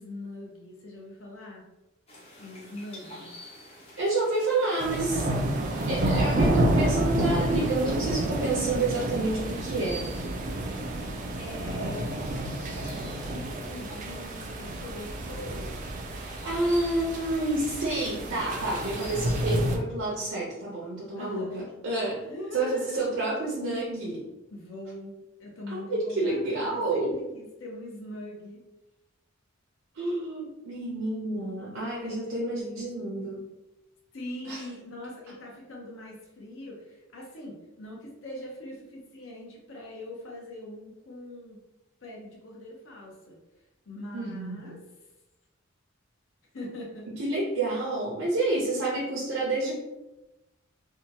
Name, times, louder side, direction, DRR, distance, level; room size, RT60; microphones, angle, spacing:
voice 1, 0.0-1.6 2.4-3.3 11.4-12.2 12.7-15.9 21.2-21.5 22.2-23.0 24.5-28.6 32.0-32.9 34.1-41.6 42.0-43.4 43.9-44.8 46.5-47.1, left 1 dB, 65° left, -2 dB, 0.7 m, -42 dB
sound 1, 2.1-19.8, equal, 30° left, 0.6 m, -48 dB
voice 2, 4.0-5.3 5.9-10.1 16.1-22.2 22.5-24.3 25.7-27.2 29.9-33.4 34.4-34.6 44.1-44.8 47.1-49.7, right 2 dB, 75° right, -5 dB, 0.6 m, -29 dB
sound 2, 4.8-19.8, right 1 dB, 40° right, 0.3 m, -29 dB
2.8 x 2.2 x 2.7 m, 0.99 s
head